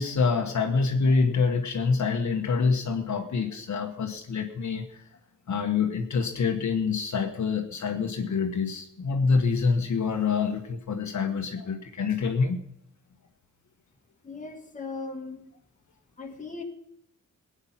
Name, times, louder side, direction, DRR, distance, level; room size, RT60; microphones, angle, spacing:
voice 1, 0.0-5.0 5.5-12.6, left 5 dB, 60° left, 4 dB, 1.4 m, -26 dB
voice 2, 14.2-15.5 16.2-16.6, left 3 dB, 25° left, 2 dB, 2.0 m, -38 dB
20.0 x 8.9 x 5.9 m, 0.72 s
wide cardioid pair, 140°, 32 cm